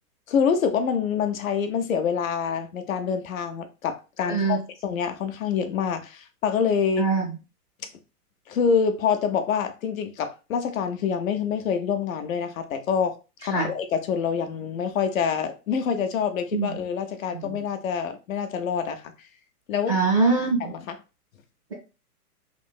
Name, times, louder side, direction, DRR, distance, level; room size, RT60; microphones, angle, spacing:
voice 1, 0.3-7.1 8.5-13.1 13.4-19.0 19.7-20.0 20.6-20.9, left 6 dB, 60° left, 0.6 m, -26 dB
voice 2, 4.3-4.6 7.0-7.4 13.5-13.7 16.5-16.8 17.3-17.6 19.9-20.7, right 4 dB, 20° right, 0.4 m, -23 dB
3.0 x 2.7 x 2.2 m
hypercardioid pair, 160°, 46 cm